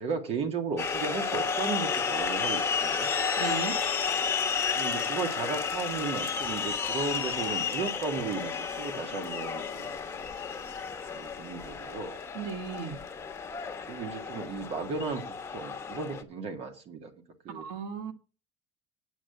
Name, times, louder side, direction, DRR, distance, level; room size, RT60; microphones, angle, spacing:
voice 1, 0.0-3.1 4.7-10.2 11.1-12.2 13.9-15.3 15.5-17.1 17.4-17.7, right 4 dB, 50° right, 2.0 m, -35 dB
sound 1, 0.8-16.2, left 6 dB, 20° left, 1.2 m, -32 dB
voice 2, 3.4-3.8 12.3-13.0 17.5-18.1, right 6 dB, 75° right, 1.6 m, -35 dB
8.9 x 5.8 x 8.1 m
cardioid pair, 140°, 13 cm